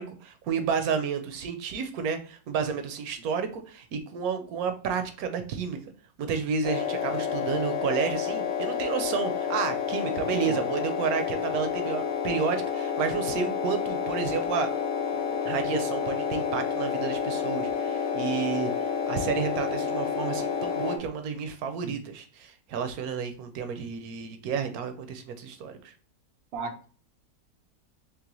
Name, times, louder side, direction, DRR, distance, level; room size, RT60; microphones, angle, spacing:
voice 1, 0.0-5.8 6.2-14.7 15.4-25.9, right 6 dB, 70° right, 8 dB, 0.9 m, -31 dB
sound 1, 6.6-21.0, left 6 dB, 85° left, 1.3 m, -29 dB
voice 2, 26.5-26.9, right 4 dB, 85° right, 5 dB, 0.5 m, -36 dB
3.8 x 3.1 x 3.0 m, 0.41 s
omnidirectional pair, 1.9 m